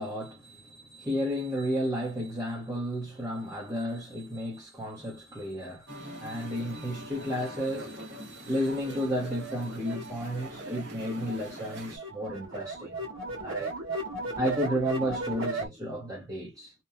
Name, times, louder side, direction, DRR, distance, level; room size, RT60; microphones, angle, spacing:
voice 1, 0.0-12.9 13.4-13.7 14.4-16.7, equal, 15° right, 0.7 m, -33 dB
Musical instrument, 5.9-12.0, equal, 50° right, 1.0 m, -44 dB
sound 1, 8.7-15.7, right 2 dB, 65° right, 1.3 m, -36 dB
2.9 x 2.0 x 2.4 m
head